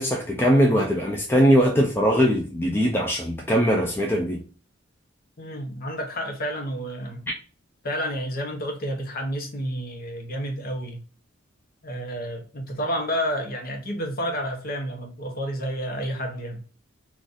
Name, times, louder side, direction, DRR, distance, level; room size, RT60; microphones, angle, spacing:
voice 1, 0.0-4.4, equal, 10° left, 0.4 m, -21 dB
voice 2, 5.4-7.2 7.8-11.0 11.8-16.6, equal, 45° left, 0.8 m, -30 dB
3.8 x 2.4 x 2.5 m
head